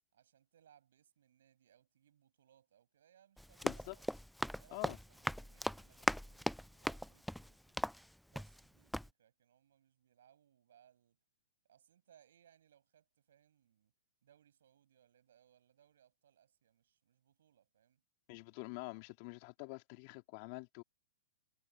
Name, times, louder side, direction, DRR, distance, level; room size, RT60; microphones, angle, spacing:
voice 1, 0.1-4.2 4.6-7.9 8.3-11.2 11.6-13.9 14.2-18.0, right 10 dB, 70° right, 7.7 m, -69 dB
Run, 3.4-8.7 8.9-9.1, equal, ahead, 0.5 m, -39 dB
voice 2, 3.6-3.9 4.7-5.0 18.3-20.8, left 29 dB, 45° left, 3.2 m, -46 dB
hypercardioid pair, 130°, 0 cm